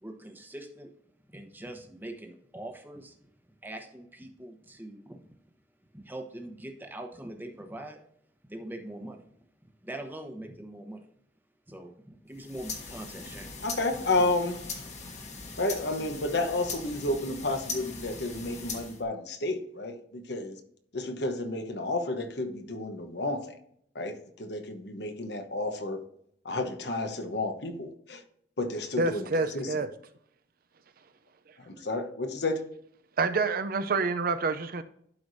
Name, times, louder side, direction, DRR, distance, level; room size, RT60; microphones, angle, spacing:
voice 1, 0.0-0.9 1.3-3.2 3.6-5.2 5.9-8.0 8.5-9.2 9.8-11.1 11.7-13.5, right 1 dB, 10° right, 1.0 m, -42 dB
sound 1, 12.3-19.0, left 4 dB, 40° left, 1.3 m, -40 dB
voice 2, 13.6-14.8 15.6-20.6 20.9-23.5 23.9-26.0 26.4-28.2 28.6-29.3 29.5-29.8 31.7-32.6, left 2 dB, 65° left, 1.1 m, -31 dB
voice 3, 29.0-29.9 33.2-34.8, right 3 dB, 55° right, 0.5 m, -27 dB
11.5 x 4.9 x 2.7 m
head